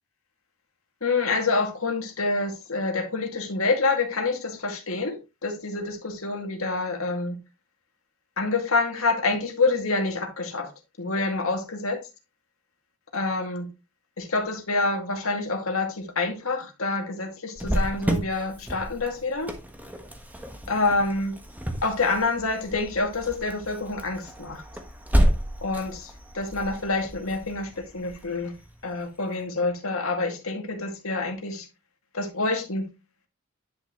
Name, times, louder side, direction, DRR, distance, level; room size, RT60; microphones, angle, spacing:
voice 1, 1.0-7.4 8.4-10.7 11.0-12.0 13.1-13.7 14.2-19.5 20.7-21.4 21.8-24.6 25.6-28.5 28.8-31.7 32.1-32.9, left 3 dB, 75° left, 2.2 m, -27 dB
Cricket, 17.6-29.0, equal, 10° right, 1.3 m, -30 dB
10.5 x 6.0 x 3.1 m
head